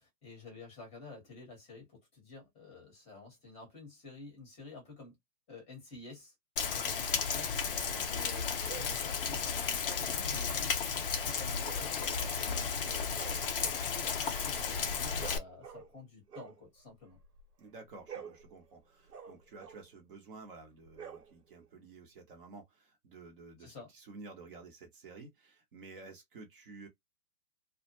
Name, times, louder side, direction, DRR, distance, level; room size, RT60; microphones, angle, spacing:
voice 1, 0.0-5.2 5.5-6.3 6.6-13.1 13.6-17.2 23.6-23.9, left 3 dB, 15° left, 0.8 m, -50 dB
Rain, 6.6-15.4, left 6 dB, 40° left, 0.4 m, -34 dB
voice 2, 7.7-8.1 17.6-26.9, right 3 dB, 35° right, 0.7 m, -52 dB
sound 1, 8.6-9.0 11.6-12.7 13.0-16.0 16.3-17.5 17.9-19.9 20.9-21.7, right 7 dB, 80° right, 1.1 m, -50 dB
2.2 x 2.1 x 2.8 m
hypercardioid pair, 135°, 46 cm